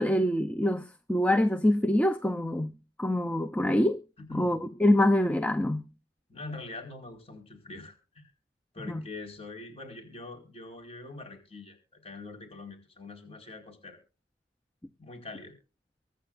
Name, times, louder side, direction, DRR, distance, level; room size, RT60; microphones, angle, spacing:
voice 1, 0.0-4.0 4.3-5.9 8.9-9.0, left 1 dB, 10° left, 0.6 m, -25 dB
voice 2, 4.2-4.6 6.3-8.3 8.7-11.8 12.0-14.0 15.0-15.5, left 3 dB, 35° left, 4.8 m, -44 dB
24.0 x 9.3 x 2.5 m
head